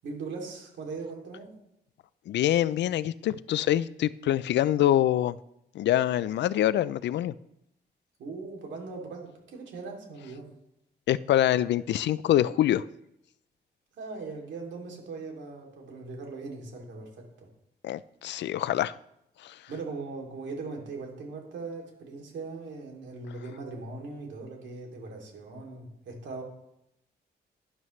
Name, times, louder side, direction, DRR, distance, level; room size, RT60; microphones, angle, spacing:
voice 1, 0.0-1.5 8.2-10.5 13.9-17.5 19.7-26.4, right 3 dB, 90° right, 0 dB, 2.7 m, -40 dB
voice 2, 2.3-5.4 5.7-7.3 11.1-12.8 17.8-18.9 19.4-19.6, left 12 dB, 75° left, 18 dB, 0.4 m, -25 dB
12.0 x 11.0 x 3.2 m, 0.81 s
cardioid pair, 120°, 18 cm